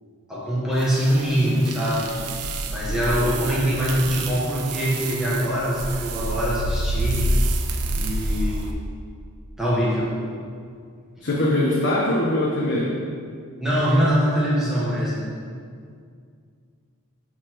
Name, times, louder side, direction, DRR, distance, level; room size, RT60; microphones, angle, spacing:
voice 1, 0.3-2.1 2.7-7.4 7.9-8.7 9.6-10.1 11.2-11.3 13.6-15.3, equal, ahead, -8 dB, 1.4 m, -23 dB
sound 1, 0.8-8.7, right 1 dB, 90° right, 0.7 m, -27 dB
voice 2, 11.2-12.9, left 1 dB, 55° left, -5 dB, 1.1 m, -22 dB
11.5 x 4.3 x 4.6 m, 2.2 s
head